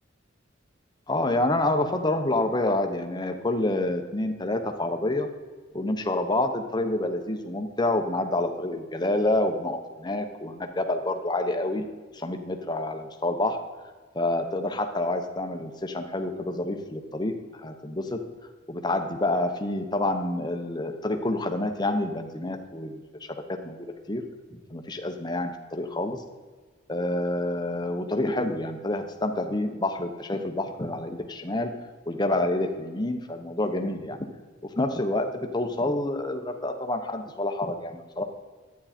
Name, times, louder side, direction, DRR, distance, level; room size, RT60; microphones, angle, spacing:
voice 1, 1.1-5.3 5.7-11.8 12.1-13.6 14.1-18.2 18.7-23.0 23.3-24.2 24.5-26.2 26.9-31.7 32.0-34.3 34.8-38.2, left 2 dB, 20° left, 5 dB, 1.0 m, -28 dB
11.5 x 9.5 x 4.4 m, 1.4 s
head